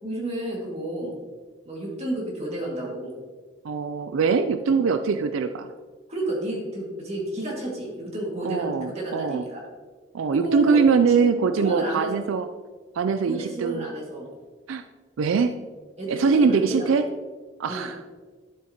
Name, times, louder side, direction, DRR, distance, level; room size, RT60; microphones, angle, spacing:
voice 1, 0.0-1.2 1.7-3.1 6.1-9.6 10.3-10.8 11.6-12.1 13.2-14.3 16.0-16.9 17.6-17.9, right 1 dB, 30° right, -2 dB, 2.1 m, -31 dB
voice 2, 3.6-5.7 8.4-9.5 10.1-12.5 12.9-13.9 14.7-14.8 15.2-15.5 16.1-17.1 17.6-18.0, right 5 dB, 80° right, 9 dB, 0.4 m, -22 dB
11.5 x 7.1 x 2.9 m, 1.4 s
head